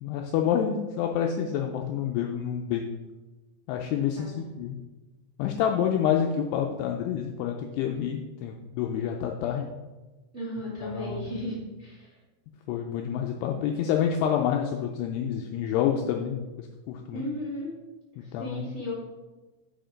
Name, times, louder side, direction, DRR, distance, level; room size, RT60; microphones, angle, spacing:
voice 1, 0.0-2.8 3.7-4.8 5.4-9.7 10.8-11.3 12.7-17.2 18.3-18.7, left 9 dB, 85° left, 3 dB, 2.4 m, -28 dB
voice 2, 3.9-4.4 10.3-12.1 17.1-17.7 18.4-18.9, equal, 30° right, -5 dB, 1.4 m, -35 dB
7.8 x 5.1 x 5.1 m, 1.2 s
omnidirectional pair, 5.2 m